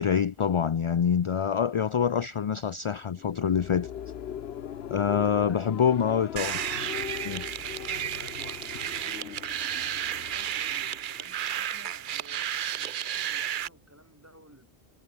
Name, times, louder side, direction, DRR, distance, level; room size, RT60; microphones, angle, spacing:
voice 1, 0.0-3.9 4.9-6.6 7.2-7.4, left 7 dB, 45° left, 0.4 m, -26 dB
sound 1, 3.0-11.6, left 9 dB, 75° left, 1.0 m, -40 dB
voice 2, 5.1-6.2 7.6-9.4 9.8-14.7, equal, 15° right, 3.9 m, -53 dB
sound 2, 6.4-13.7, right 10 dB, 60° right, 0.7 m, -32 dB
omnidirectional pair, 1.0 m